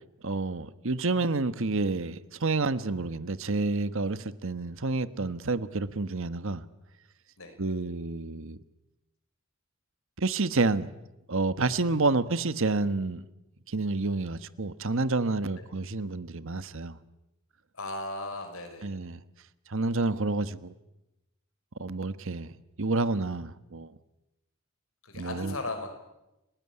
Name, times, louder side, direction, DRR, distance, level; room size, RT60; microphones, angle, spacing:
voice 1, 0.2-6.6 7.6-8.6 10.2-10.9 11.3-13.2 13.7-17.0 18.8-19.2 19.7-20.7 21.8-22.5 22.8-23.9 25.2-25.5, right 3 dB, 65° right, 1.2 m, -29 dB
voice 2, 17.7-18.9 25.0-25.9, left 2 dB, 75° left, 6.0 m, -36 dB
30.0 x 18.5 x 9.9 m
head